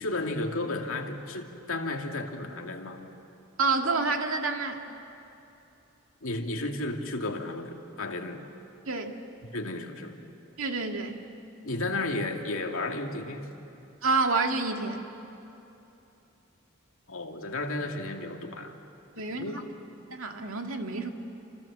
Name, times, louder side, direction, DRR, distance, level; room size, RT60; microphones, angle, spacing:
voice 1, 0.0-3.0 6.2-8.4 9.5-10.2 11.6-13.5 17.1-18.8 19.3-19.5, left 2 dB, 75° left, 3 dB, 2.4 m, -33 dB
voice 2, 3.6-4.8 8.9-9.1 10.6-11.3 14.0-15.0 19.2-19.6 20.1-21.1, right 3 dB, 75° right, 3 dB, 2.1 m, -28 dB
28.5 x 28.0 x 7.4 m, 2.8 s
head